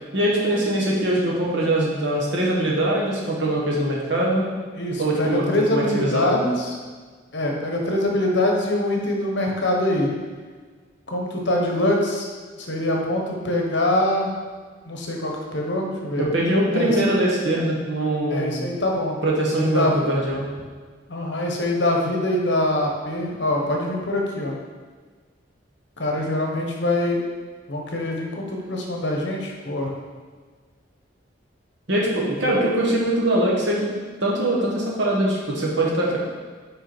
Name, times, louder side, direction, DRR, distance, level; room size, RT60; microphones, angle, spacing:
voice 1, 0.1-4.5 5.0-5.4 5.7-6.5 16.2-18.7 19.2-20.5 31.9-33.8 34.2-36.2, right 1 dB, 65° right, -3 dB, 1.4 m, -22 dB
voice 2, 4.7-6.7 7.3-10.1 11.1-12.2 12.6-14.3 14.8-16.3 16.7-17.0 18.3-19.2 19.7-20.0 21.1-24.5 26.0-27.2 27.7-29.9 32.4-32.6, left 1 dB, 65° left, 0 dB, 1.1 m, -24 dB
5.6 x 4.8 x 4.4 m, 1.5 s
head